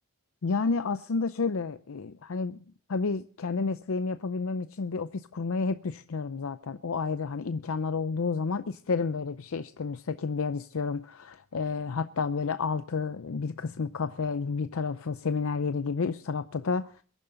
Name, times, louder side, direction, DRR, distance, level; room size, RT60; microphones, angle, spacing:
voice 1, 0.4-2.6 2.9-17.0, left 4 dB, 75° left, 0.6 m, -30 dB
22.5 x 11.0 x 3.8 m
head